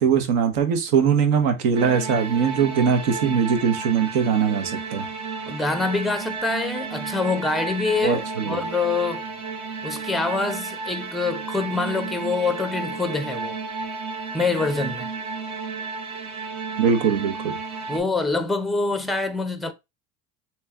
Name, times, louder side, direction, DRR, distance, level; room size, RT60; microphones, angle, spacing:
voice 1, 0.0-5.1 8.0-8.6 16.8-17.5, right 7 dB, 80° right, 1.1 m, -21 dB
sound 1, 1.7-18.0, right 4 dB, 55° right, 1.2 m, -32 dB
voice 2, 5.5-9.2 9.8-13.6 14.3-15.1 17.9-19.7, left 3 dB, ahead, 0.4 m, -25 dB
3.2 x 3.0 x 3.4 m
supercardioid pair, 100°, 44 cm